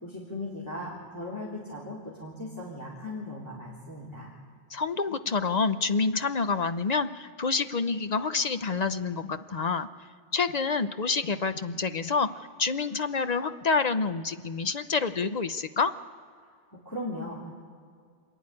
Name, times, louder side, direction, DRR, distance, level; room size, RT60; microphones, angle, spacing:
voice 1, 0.0-4.3 16.7-17.5, left 1 dB, 15° left, -6 dB, 3.3 m, -38 dB
voice 2, 4.7-9.9 10.3-12.3 12.6-15.9, left 4 dB, 45° left, 10 dB, 0.6 m, -27 dB
27.0 x 10.0 x 9.8 m, 2.1 s
omnidirectional pair, 1.2 m